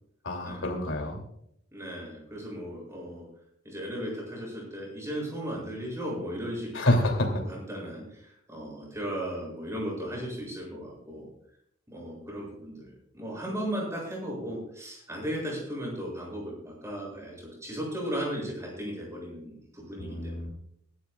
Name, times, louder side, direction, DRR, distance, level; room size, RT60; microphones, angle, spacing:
voice 1, 0.2-1.2 6.7-7.4 20.0-20.5, left 1 dB, 70° left, 2 dB, 2.9 m, -27 dB
voice 2, 1.7-3.2 3.7-7.1 7.3-11.3 11.9-20.5, equal, 15° right, -3 dB, 7.1 m, -36 dB
24.5 x 12.5 x 2.4 m, 0.71 s
head